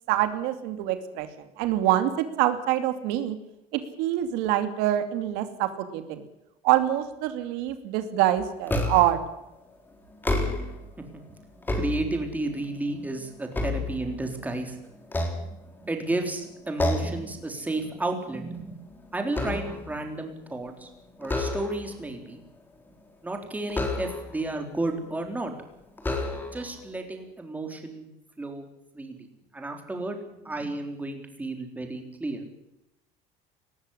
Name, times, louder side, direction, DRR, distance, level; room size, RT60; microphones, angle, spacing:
voice 1, 0.1-3.4 3.7-6.2 6.6-9.2, right 13 dB, 80° right, 9 dB, 2.6 m, -25 dB
sound 1, 8.7-9.2 10.1-10.9 11.4-12.5 13.0-14.5 15.0-16.0 16.8-17.3 17.7-17.9 18.3-20.0 21.2-22.0 23.7-24.5 25.3-25.4 26.0-26.8, left 2 dB, 10° left, 3.9 m, -30 dB
voice 2, 11.7-14.8 15.8-18.7 19.1-20.9 21.2-22.4 23.2-25.5 26.5-28.1 28.4-28.6 28.9-29.3 29.5-30.2 30.4-32.5, right 2 dB, 10° right, 4 dB, 3.8 m, -32 dB
19.5 x 15.0 x 9.9 m, 0.88 s
cardioid pair, 145°, 16 cm